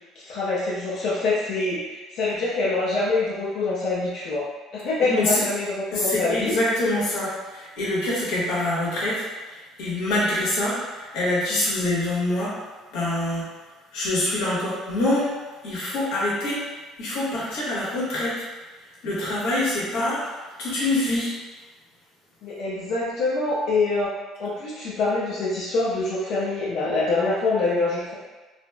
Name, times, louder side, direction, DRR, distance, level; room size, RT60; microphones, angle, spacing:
voice 1, 0.3-4.4 4.7-6.5 19.9-20.1 22.4-24.1 24.4-28.1, left 3 dB, 70° left, -8 dB, 0.6 m, -25 dB
voice 2, 5.0-5.4 5.9-12.6 12.9-13.5 13.9-15.3 15.6-16.6 17.0-18.3 19.0-21.3, left 1 dB, 85° left, -7 dB, 1.2 m, -25 dB
4.0 x 2.0 x 2.2 m, 1.3 s
cardioid pair, 125°, 0 cm